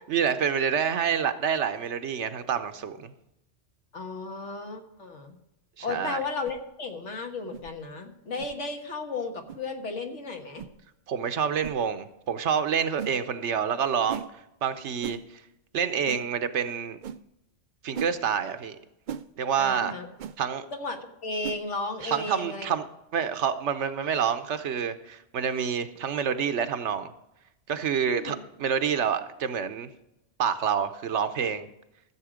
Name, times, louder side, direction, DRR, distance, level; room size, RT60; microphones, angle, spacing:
voice 1, 0.1-3.1 5.8-6.2 11.1-14.2 14.6-15.4 15.7-17.0 17.8-18.8 19.4-19.9 20.4-20.6 22.0-22.9 23.1-27.1 27.7-29.9 30.4-31.7, right 7 dB, 75° right, 10 dB, 1.1 m, -27 dB
voice 2, 3.9-5.4 5.8-10.6 19.6-20.1 20.7-22.7 28.1-28.4, left 3 dB, 80° left, 5 dB, 1.6 m, -34 dB
sound 1, 6.4-6.6 7.5-7.7 8.4-8.6 9.5-9.6 10.6-10.8 11.6-11.8 13.0-13.2 14.1-14.3 15.0-15.2 16.1-16.3 17.0-17.2 17.9-18.2 19.1-19.3 20.2-20.4 21.4-21.6, right 8 dB, 55° right, 0.5 m, -37 dB
14.0 x 7.5 x 5.0 m, 0.88 s
omnidirectional pair, 1.2 m